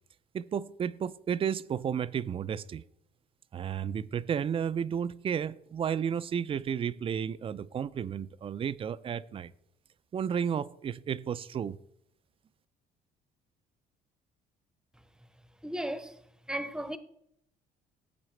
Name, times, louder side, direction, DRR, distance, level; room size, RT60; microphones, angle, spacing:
voice 1, 0.3-2.8 3.5-9.5 10.1-11.8, right 8 dB, 35° right, 0.4 m, -32 dB
voice 2, 15.6-16.2 16.5-17.0, right 1 dB, 5° right, 0.7 m, -35 dB
15.5 x 8.5 x 3.2 m
cardioid pair, 110°, 17 cm